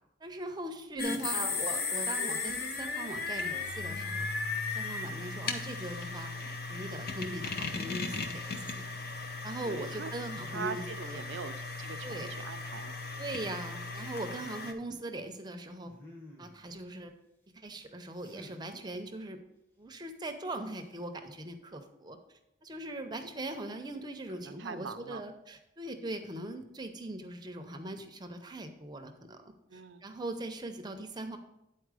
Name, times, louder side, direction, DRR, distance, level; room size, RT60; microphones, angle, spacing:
voice 1, 0.2-4.2 4.8-6.3 6.7-8.9 9.4-11.2 12.0-12.3 13.2-15.9 16.4-17.1 17.5-19.4 19.8-22.2 22.6-31.4, right 1 dB, 20° right, 6 dB, 0.6 m, -40 dB
sound 1, 1.0-14.7, left 4 dB, 55° left, 0.7 m, -36 dB
voice 2, 9.6-10.1 10.5-13.0 24.4-25.2 29.7-30.1, right 6 dB, 75° right, 10 dB, 0.5 m, -42 dB
sound 2, 14.3-14.9 15.8-16.7 18.2-18.7 20.6-21.0, left 1 dB, 10° left, 0.9 m, -53 dB
9.2 x 4.3 x 4.9 m, 0.86 s
head